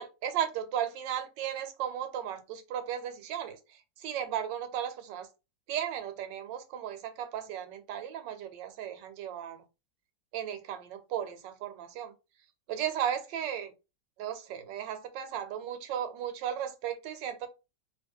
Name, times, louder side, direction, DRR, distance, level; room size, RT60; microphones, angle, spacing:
voice 1, 0.0-5.3 5.7-9.6 10.3-12.1 12.7-13.7 14.2-17.5, right 9 dB, 85° right, 1.3 m, -35 dB
2.8 x 2.5 x 3.6 m
omnidirectional pair, 1.9 m